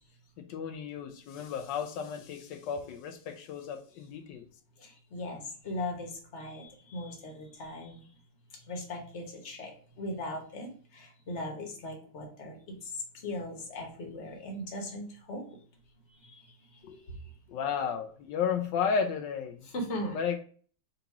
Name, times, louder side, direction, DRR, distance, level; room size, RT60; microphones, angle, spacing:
voice 1, 0.4-4.4 16.8-17.0 17.5-19.6 20.1-20.4, left 6 dB, 85° left, 5 dB, 1.3 m, -33 dB
voice 2, 4.8-8.0 8.7-12.6 13.2-15.4 16.2-16.4 19.7-20.2, left 1 dB, 45° left, 1 dB, 1.4 m, -38 dB
3.9 x 2.9 x 4.6 m, 0.43 s
omnidirectional pair, 1.9 m